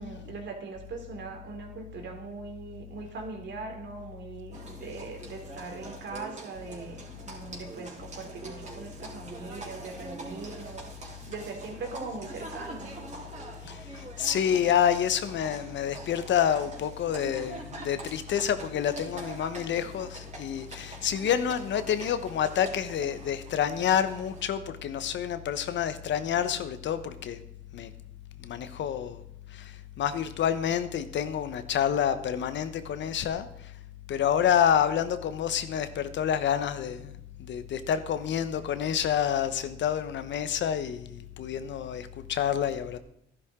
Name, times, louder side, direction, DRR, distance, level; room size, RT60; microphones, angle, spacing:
voice 1, 0.0-13.1, right 4 dB, 65° right, 3 dB, 3.0 m, -41 dB
Livestock farm animals working animals, 4.5-24.4, right 2 dB, 35° right, 3.5 m, -44 dB
voice 2, 13.7-27.4 27.7-27.9 28.4-29.2 29.5-33.5 34.1-37.1 37.5-43.0, left 9 dB, 65° left, 11 dB, 1.0 m, -28 dB
12.5 x 11.0 x 3.7 m, 0.77 s
cardioid pair, 90°, 20 cm